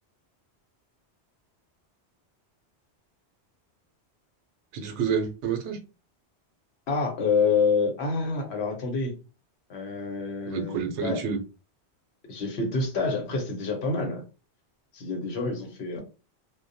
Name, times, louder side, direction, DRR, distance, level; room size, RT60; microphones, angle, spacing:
voice 1, 4.7-5.8 10.5-11.4 15.9-16.0, right 6 dB, 85° right, 0.9 m, -29 dB
voice 2, 6.9-9.1 9.7-11.2 12.3-14.2 14.9-16.0, left 4 dB, 70° left, 1.0 m, -27 dB
2.2 x 2.2 x 2.6 m
omnidirectional pair, 1.1 m